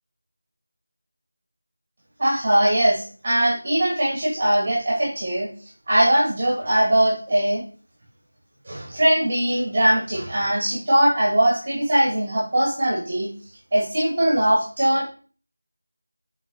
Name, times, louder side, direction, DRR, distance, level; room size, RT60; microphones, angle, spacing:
voice 1, 2.2-5.5 5.9-7.6 8.7-13.3 13.7-15.1, right 1 dB, 20° right, -4 dB, 2.5 m, -20 dB
8.1 x 4.9 x 4.0 m, 0.40 s
figure-of-eight pair, 175°, 0 cm